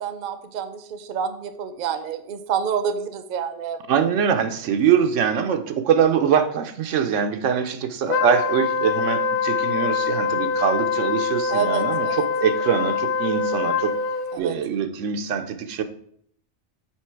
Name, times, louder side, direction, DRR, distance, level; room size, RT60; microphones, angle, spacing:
voice 1, 0.0-3.8 11.5-12.2 14.3-14.5, right 7 dB, 55° right, 10 dB, 0.7 m, -28 dB
voice 2, 3.9-14.0 14.4-15.8, right 7 dB, 90° right, 8 dB, 1.0 m, -23 dB
Wind instrument woodwind instrument, 8.1-14.4, left 5 dB, 60° left, 0.6 m, -24 dB
7.5 x 3.9 x 4.5 m, 0.64 s
omnidirectional pair, 1.2 m